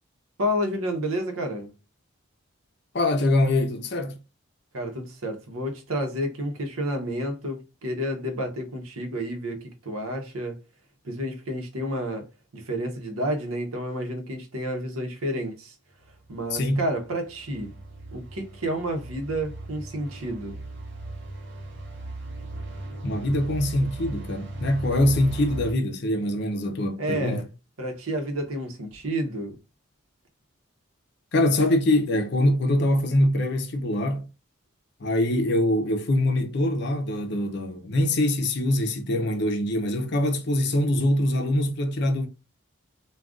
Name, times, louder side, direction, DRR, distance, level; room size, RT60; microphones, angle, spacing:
voice 1, 0.4-1.7 4.7-10.6 11.0-12.3 12.5-15.7 16.3-17.7 18.1-20.6 27.0-27.4 27.8-29.6, equal, 90° right, 0.8 m, -30 dB
voice 2, 2.9-4.2 16.5-16.8 23.0-27.5 31.3-34.3 35.0-42.3, left 1 dB, 50° left, 0.5 m, -23 dB
sound 1, 16.0-25.7, right 2 dB, 55° right, 0.9 m, -38 dB
2.4 x 2.3 x 3.5 m
head